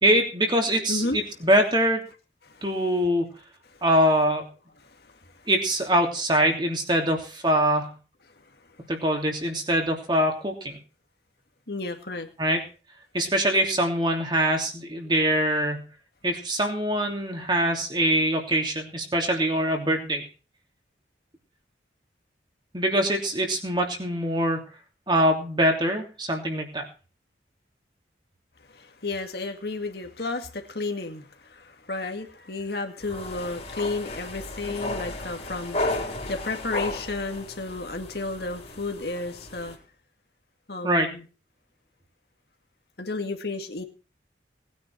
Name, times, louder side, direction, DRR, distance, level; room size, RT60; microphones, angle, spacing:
voice 1, 0.0-2.0 2.6-3.3 3.8-4.5 5.5-7.9 8.9-10.8 12.4-12.6 13.1-15.8 16.2-20.3 22.7-24.6 25.1-26.9 40.8-41.1, right 1 dB, 25° right, 2 dB, 3.0 m, -23 dB
voice 2, 0.9-1.2 2.5-2.6 4.8-5.1 11.7-12.3 28.7-39.8 40.7-41.2 43.0-43.8, left 3 dB, 60° left, 4 dB, 2.2 m, -32 dB
sound 1, 33.0-39.8, left 2 dB, 35° left, 3.7 m, -34 dB
19.5 x 9.7 x 4.7 m, 0.36 s
head